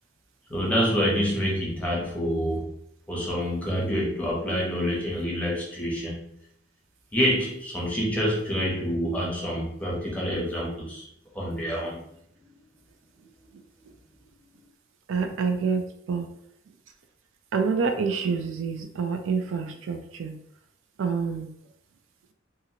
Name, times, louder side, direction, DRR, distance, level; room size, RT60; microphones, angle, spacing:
voice 1, 0.5-2.7 3.1-6.2 7.1-11.0 11.3-12.0, equal, 5° left, -4 dB, 0.7 m, -27 dB
voice 2, 15.1-15.8 16.1-16.3 17.5-20.3 21.0-21.5, right 5 dB, 75° right, 6 dB, 0.4 m, -27 dB
2.8 x 2.4 x 2.8 m, 0.74 s
head